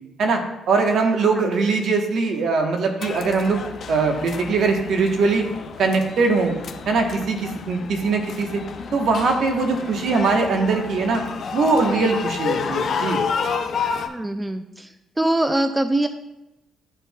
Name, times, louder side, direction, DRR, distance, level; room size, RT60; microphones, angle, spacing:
voice 1, 0.2-3.6 3.9-5.5 5.8-6.6 6.9-8.6 8.9-11.2 11.5-13.2, right 4 dB, 65° right, 3 dB, 1.1 m, -21 dB
sound 1, 3.0-14.1, left 6 dB, 55° left, 0.6 m, -30 dB
voice 2, 14.1-14.9 15.2-16.1, right 1 dB, 15° right, 9 dB, 0.3 m, -23 dB
12.0 x 4.4 x 2.3 m, 0.93 s
cardioid pair, 90°, 0 cm